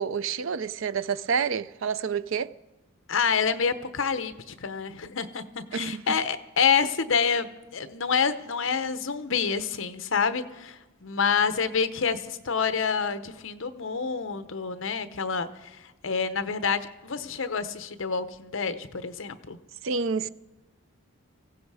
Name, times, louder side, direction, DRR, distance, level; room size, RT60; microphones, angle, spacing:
voice 1, 0.0-2.5 5.7-6.2 19.8-20.3, right 6 dB, 65° right, 0.5 m, -28 dB
voice 2, 3.1-7.5 7.7-15.8 16.0-19.6, left 6 dB, 60° left, 0.8 m, -27 dB
18.0 x 16.0 x 4.8 m
head